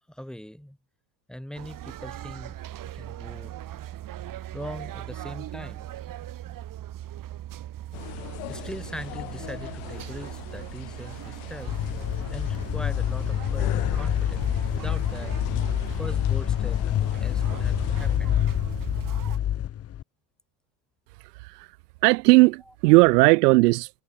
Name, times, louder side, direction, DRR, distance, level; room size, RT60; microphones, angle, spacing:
voice 1, 0.1-0.8 1.3-2.6 2.9-3.5 4.5-5.9 8.5-11.7 12.3-14.5 14.7-15.3 15.9-18.4, equal, ahead, 5.2 m, -41 dB
sound 1, 1.6-19.4, right 13 dB, 40° right, 2.9 m, -39 dB
sound 2, 7.9-18.2, left 40 dB or more, 65° left, 1.5 m, -42 dB
sound 3, 11.7-20.0, left 11 dB, 30° left, 1.0 m, -26 dB
voice 2, 22.0-23.9, right 24 dB, 75° right, 0.7 m, -17 dB
hypercardioid pair, 95°, 48 cm